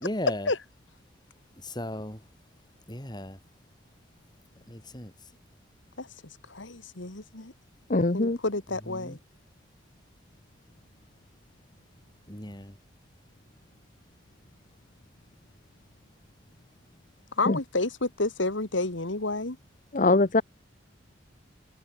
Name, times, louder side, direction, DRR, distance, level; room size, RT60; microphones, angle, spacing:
voice 1, 0.0-0.5 1.6-2.2 2.9-3.4 4.7-5.1 9.0-9.2 12.3-12.7, left 1 dB, 20° left, 7.7 m, -35 dB
voice 2, 6.5-7.5 8.1-9.2 17.4-19.6, left 2 dB, 70° left, 2.4 m, -30 dB
voice 3, 7.9-8.4 17.5-17.6 19.9-20.4, left 2 dB, 40° left, 1.0 m, -22 dB
head